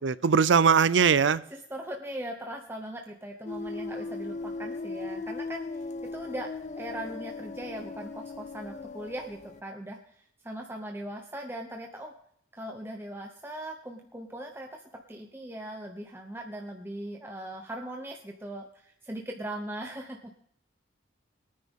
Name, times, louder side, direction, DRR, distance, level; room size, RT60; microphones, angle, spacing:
voice 1, 0.0-1.4, right 6 dB, 75° right, 18 dB, 0.5 m, -21 dB
voice 2, 1.5-5.8 6.1-6.5 6.8-12.1 12.5-20.3, right 1 dB, 10° right, 2 dB, 0.8 m, -39 dB
sound 1, 3.5-9.6, left 3 dB, 40° left, 0.4 m, -38 dB
22.0 x 9.8 x 3.7 m, 0.68 s
head